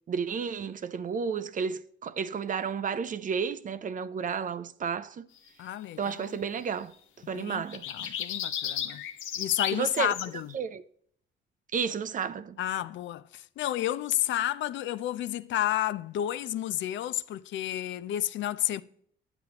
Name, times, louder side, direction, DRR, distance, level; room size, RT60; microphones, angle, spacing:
voice 1, 0.1-5.3 6.0-6.9 7.3-8.2 9.7-10.1 10.5-10.8 11.7-12.6, right 6 dB, 40° right, 0.5 m, -32 dB
voice 2, 5.6-6.4 7.3-7.6 7.9-9.0 9.4-10.5 12.6-18.8, left 12 dB, 70° left, 0.4 m, -31 dB
sound 1, 7.7-10.3, left 10 dB, 90° left, 0.9 m, -34 dB
9.7 x 7.9 x 2.9 m
cardioid pair, 90°, 20 cm